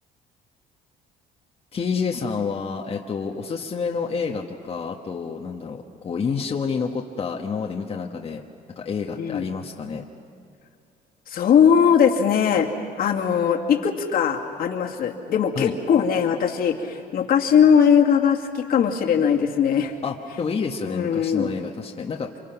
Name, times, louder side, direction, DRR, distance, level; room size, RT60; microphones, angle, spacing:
voice 1, 1.7-8.4 8.7-10.0 15.5-15.7 20.0-22.3, left 5 dB, 35° left, 0 dB, 1.4 m, -28 dB
voice 2, 11.3-12.7 13.0-19.9 20.9-21.5, left 7 dB, 60° left, 2 dB, 2.3 m, -20 dB
28.5 x 25.0 x 5.9 m, 2.4 s
cardioid pair, 110°, 17 cm